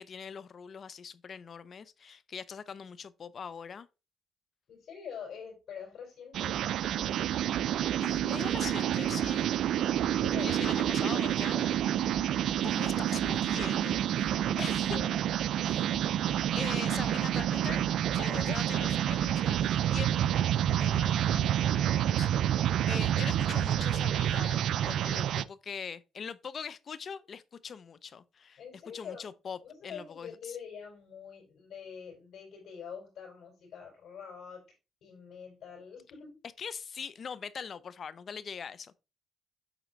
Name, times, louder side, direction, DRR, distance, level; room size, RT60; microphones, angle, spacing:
voice 1, 0.0-3.9 8.0-9.5 10.4-11.8 12.6-14.3 14.6-15.0 15.6-15.9 16.6-17.8 18.1-20.1 20.8-22.3 22.9-28.6 28.9-30.6 36.6-39.0, left 6 dB, 50° left, 0.6 m, -42 dB
voice 2, 4.7-6.6 10.2-11.7 12.7-13.0 14.0-15.2 18.2-19.0 28.6-29.3 29.6-34.6 35.0-36.4, left 7 dB, 65° left, 4.2 m, -45 dB
sound 1, 6.3-25.4, right 11 dB, 75° right, 0.4 m, -28 dB
8.2 x 4.4 x 3.9 m
cardioid pair, 90°, 0 cm